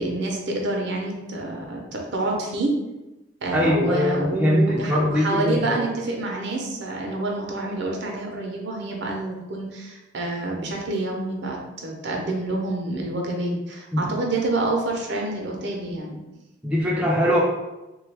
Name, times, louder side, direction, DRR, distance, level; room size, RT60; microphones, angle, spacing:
voice 1, 0.0-2.7 3.4-16.2, right 2 dB, 60° right, 0 dB, 0.6 m, -27 dB
voice 2, 3.5-5.8 13.9-14.1 16.6-17.4, equal, 5° right, -4 dB, 0.4 m, -22 dB
3.2 x 2.3 x 3.3 m, 1.0 s
head